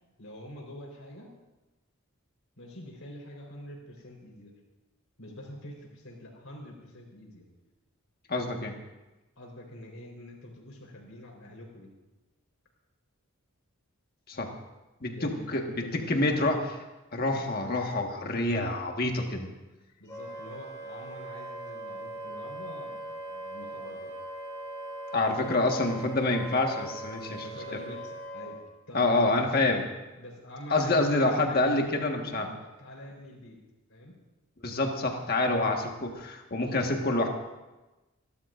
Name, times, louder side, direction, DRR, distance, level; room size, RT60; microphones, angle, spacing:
voice 1, 0.2-1.3 2.6-4.5 5.2-7.5 9.4-11.9 15.1-16.6 20.0-24.1 25.4-25.6 27.4-28.6 28.9-29.7 30.2-33.6 33.9-34.2 35.7-35.8, left 1 dB, 70° left, 0 dB, 4.2 m, -45 dB
voice 2, 8.3-8.8 14.3-14.5 15.0-16.6 17.1-19.5 25.1-27.5 28.9-29.8 30.7-32.5 34.6-37.3, left 2 dB, 45° left, 2 dB, 1.6 m, -27 dB
Wind instrument woodwind instrument, 20.1-28.6, right 1 dB, 15° left, 4.7 m, -40 dB
28.5 x 12.5 x 2.6 m, 1.1 s
head